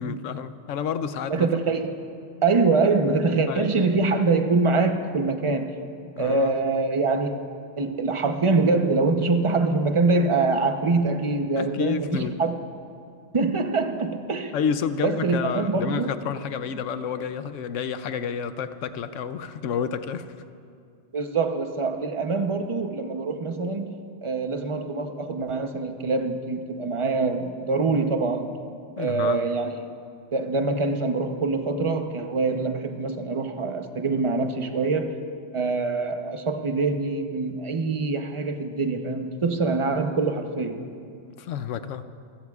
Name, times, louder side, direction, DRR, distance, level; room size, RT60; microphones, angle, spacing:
voice 1, 0.0-1.5 3.5-3.7 6.2-6.5 11.6-12.4 14.5-20.3 29.0-29.4 41.4-42.0, left 7 dB, 85° left, 11 dB, 1.0 m, -30 dB
voice 2, 1.3-2.0 2.4-5.7 6.2-7.4 7.8-12.6 13.3-14.6 15.0-16.1 21.1-28.5 29.0-29.9 30.3-35.2 35.5-40.9, right 3 dB, 30° right, 6 dB, 0.8 m, -24 dB
29.0 x 15.5 x 2.4 m, 2.4 s
omnidirectional pair, 1.3 m